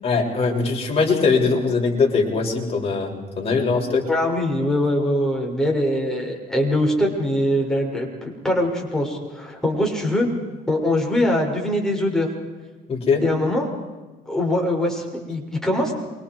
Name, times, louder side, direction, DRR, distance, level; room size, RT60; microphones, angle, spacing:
voice 1, 0.0-4.0 12.9-13.2, left 4 dB, 35° left, -1 dB, 7.0 m, -21 dB
voice 2, 4.1-10.3 10.7-12.3 13.2-13.7 14.3-15.9, left 1 dB, 5° left, -1 dB, 6.9 m, -22 dB
28.5 x 25.0 x 4.9 m, 1.2 s
cardioid pair, 110°, 17 cm